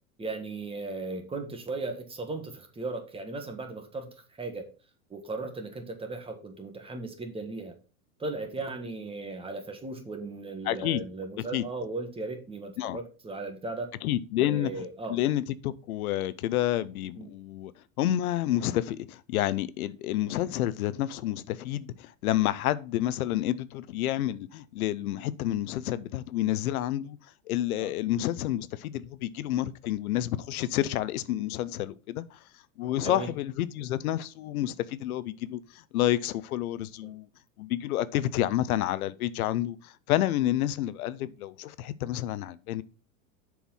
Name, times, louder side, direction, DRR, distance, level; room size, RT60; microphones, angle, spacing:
voice 1, 0.2-4.1 4.4-4.7 5.1-7.7 8.2-13.9 14.4-15.2 17.2-17.3 27.8-27.9 33.0-33.3 37.0-37.1, right 3 dB, 15° right, 1.4 m, -37 dB
voice 2, 10.6-11.0 11.5-11.6 12.8-13.0 14.0-14.7 15.1-17.7 18.0-27.2 27.5-32.4 32.8-37.3 37.6-42.8, left 13 dB, 85° left, 0.7 m, -29 dB
7.0 x 4.7 x 5.5 m
supercardioid pair, 130°, 42 cm